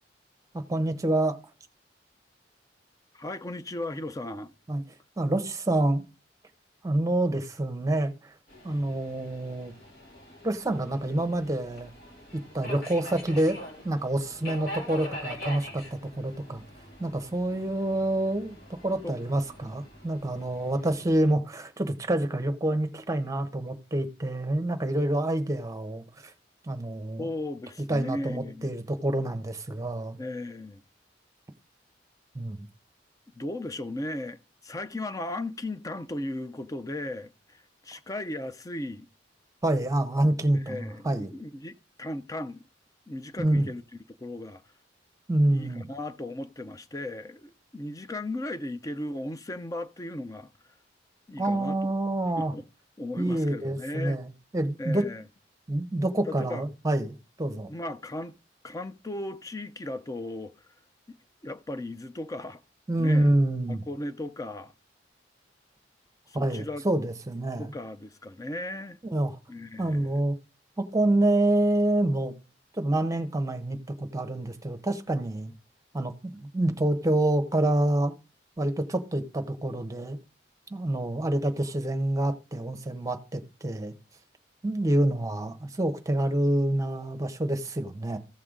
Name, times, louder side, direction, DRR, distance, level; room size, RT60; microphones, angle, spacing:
voice 1, 0.5-1.4 4.7-4.8 5.2-6.0 6.8-8.3 8.6-9.7 10.4-11.9 12.3-16.6 17.0-18.6 18.8-26.3 26.7-27.3 27.9-30.2 32.3-32.7 39.6-41.3 43.4-43.7 45.3-45.9 51.4-52.5 53.2-55.1 55.7-57.7 62.9-63.8 66.3-67.7 69.0-69.4 69.8-70.4 70.8-72.4 72.8-75.5 75.9-78.1 78.6-80.2 80.7-83.9 84.6-88.2, right 1 dB, 20° right, 0.9 m, -27 dB
voice 2, 3.1-4.5 19.0-19.2 27.2-28.7 30.2-30.8 33.4-34.4 34.6-39.1 40.5-42.6 43.1-43.8 44.2-44.6 45.5-50.5 51.3-51.9 52.4-52.6 53.0-54.2 54.8-55.2 56.3-56.6 57.7-58.3 58.6-60.5 61.1-61.2 61.4-62.6 63.0-63.3 63.7-64.7 66.3-66.8 67.6-69.0 69.5-70.2, left 1 dB, 20° left, 0.5 m, -36 dB
Subway metro underground, 8.5-21.3, left 1 dB, 60° left, 3.3 m, -44 dB
14.5 x 6.6 x 3.7 m
head